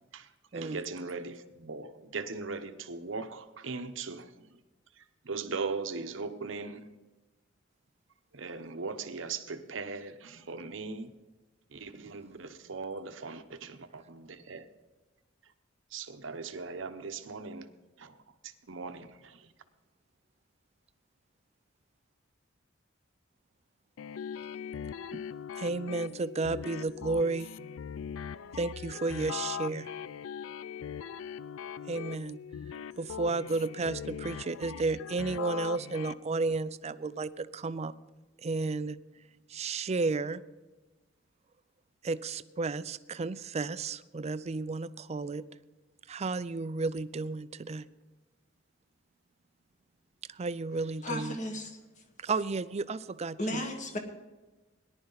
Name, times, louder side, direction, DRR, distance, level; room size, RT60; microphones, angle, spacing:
voice 1, 0.1-4.6 5.0-6.9 8.3-11.2 11.7-14.7 15.9-19.5, right 4 dB, 70° right, 0.9 m, -39 dB
sound 1, 24.0-36.1, left 8 dB, 85° left, 0.4 m, -40 dB
voice 2, 25.6-27.5 28.5-29.9 31.9-32.4 33.0-37.9 38.4-39.0 39.5-40.4 42.0-45.4 46.1-47.8 50.3-51.4 52.2-53.6, right 3 dB, 35° right, 0.4 m, -32 dB
voice 3, 51.0-51.8 53.4-54.0, left 1 dB, 40° left, 1.6 m, -34 dB
18.5 x 11.0 x 4.0 m
head